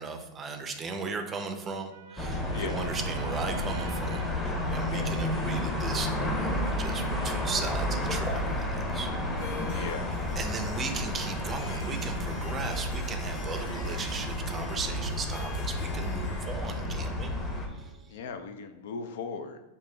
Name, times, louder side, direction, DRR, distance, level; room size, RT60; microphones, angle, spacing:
voice 1, 0.0-8.7 8.9-9.1 9.7-9.9 10.4-17.3 17.8-17.9, right 4 dB, 20° right, 6 dB, 0.5 m, -37 dB
Trumpet, 1.9-8.3, right 4 dB, 75° right, 0.5 m, -48 dB
sound 1, 2.2-17.7, left 1 dB, 10° left, 0.8 m, -31 dB
Harp, 9.3-18.1, left 4 dB, 50° left, 1.0 m, -46 dB
voice 2, 9.7-10.2 18.1-19.6, left 5 dB, 70° left, 8 dB, 0.5 m, -38 dB
5.2 x 2.9 x 3.3 m, 1.0 s
supercardioid pair, 150°, 0 cm